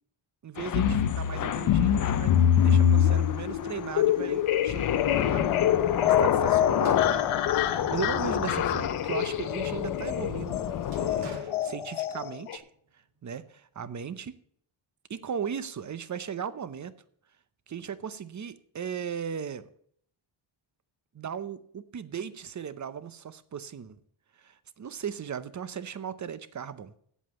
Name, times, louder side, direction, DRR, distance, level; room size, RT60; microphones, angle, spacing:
voice 1, 0.4-4.8 5.3-7.2 7.5-10.7 10.9-12.7 13.2-14.4 15.1-16.9 17.7-19.7 21.1-24.0 24.4-26.9, right 7 dB, 35° right, 0.7 m, -37 dB
Thunder / Rain, 0.6-11.4, left 9 dB, 40° left, 0.5 m, -31 dB
sound 1, 0.7-12.6, left 9 dB, 90° left, 0.9 m, -25 dB
sound 2, 6.8-9.2 9.6-12.5, right 3 dB, 70° right, 2.4 m, -48 dB
8.3 x 7.7 x 8.0 m
cardioid pair, 115°, 50 cm